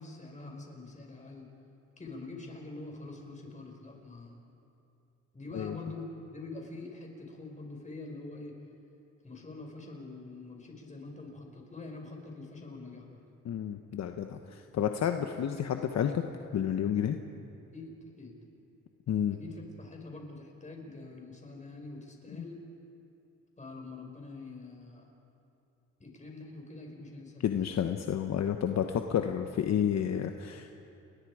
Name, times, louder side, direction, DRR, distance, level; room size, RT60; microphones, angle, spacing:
voice 1, 0.0-1.5 2.0-4.4 5.3-8.5 9.2-13.2 17.7-18.4 19.3-22.6 23.6-25.1 26.0-27.7, left 3 dB, 25° left, 1 dB, 5.3 m, -45 dB
voice 2, 13.4-16.2 16.5-17.2 19.1-19.4 27.4-30.7, left 9 dB, 60° left, 6 dB, 1.1 m, -30 dB
30.0 x 21.0 x 4.9 m, 2.8 s
cardioid pair, 90°, 30 cm